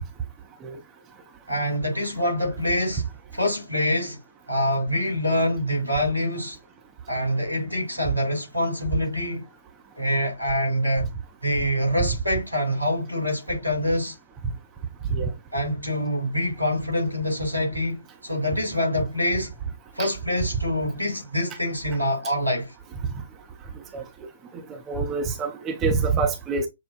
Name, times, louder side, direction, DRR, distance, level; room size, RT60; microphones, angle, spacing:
voice 1, 1.5-3.1 3.3-4.2 4.5-6.6 7.1-9.5 10.0-11.1 11.4-14.2 15.5-19.5 19.9-22.7, left 1 dB, 90° right, 2.4 m, -25 dB
voice 2, 24.9-26.7, right 4 dB, 15° right, 0.7 m, -25 dB
6.5 x 2.2 x 2.4 m
figure-of-eight pair, 125°, 0 cm